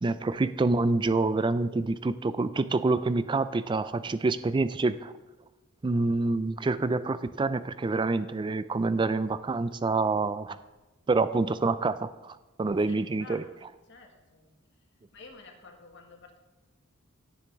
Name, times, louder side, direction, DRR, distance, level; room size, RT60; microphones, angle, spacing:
voice 1, 0.0-5.1 5.8-10.6 11.1-13.4, right 3 dB, 20° right, 14 dB, 0.3 m, -27 dB
voice 2, 12.8-14.5 15.1-16.4, left 3 dB, 55° left, 2 dB, 1.6 m, -51 dB
16.5 x 7.1 x 3.5 m, 1.1 s
head